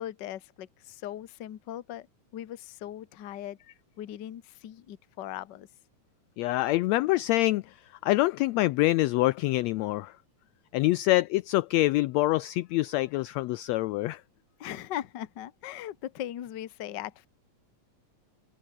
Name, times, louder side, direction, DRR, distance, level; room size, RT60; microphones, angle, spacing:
voice 1, 0.0-2.1 2.3-3.6 4.0-5.7 14.6-17.3, left 12 dB, 55° left, 1.2 m, -39 dB
voice 2, 6.4-7.8 8.0-10.1 10.7-14.2, left 18 dB, 80° left, 1.5 m, -25 dB
omnidirectional pair, 3.5 m